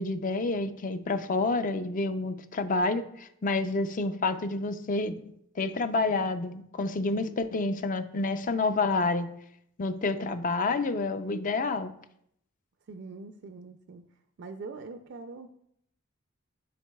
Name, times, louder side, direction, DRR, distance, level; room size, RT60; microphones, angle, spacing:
voice 1, 0.0-5.2 5.6-9.3 9.8-11.9, left 3 dB, 40° left, 10 dB, 0.4 m, -28 dB
voice 2, 12.9-14.0 14.4-15.5, right 3 dB, 55° right, 7 dB, 0.4 m, -43 dB
11.0 x 3.9 x 2.2 m, 0.72 s
head